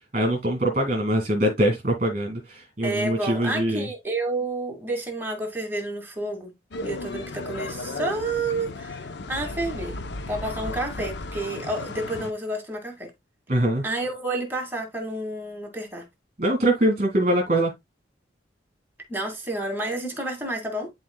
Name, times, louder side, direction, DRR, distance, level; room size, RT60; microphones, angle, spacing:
voice 1, 0.1-3.9 13.5-13.9 16.4-17.7, right 1 dB, 35° right, 2.2 m, -23 dB
voice 2, 2.8-6.5 6.8-10.0 10.3-13.1 13.8-16.0 19.1-20.9, right 2 dB, 10° right, 2.2 m, -30 dB
sound 1, 6.7-12.3, left 2 dB, 70° left, 0.7 m, -35 dB
11.5 x 4.2 x 2.3 m
head